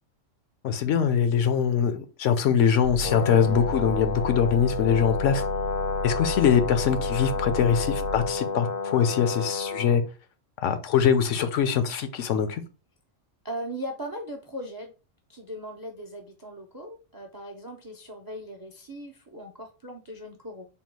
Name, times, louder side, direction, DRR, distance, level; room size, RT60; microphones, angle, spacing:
voice 1, 0.6-5.4 6.0-10.0 10.6-12.6, left 7 dB, 75° left, 0.9 m, -23 dB
sound 1, 2.8-8.4, equal, 70° right, 0.8 m, -34 dB
Brass instrument, 3.0-10.0, left 5 dB, 55° left, 0.4 m, -31 dB
voice 2, 13.4-14.9 15.3-20.6, equal, 35° right, 0.3 m, -38 dB
3.6 x 2.3 x 4.5 m
omnidirectional pair, 1.3 m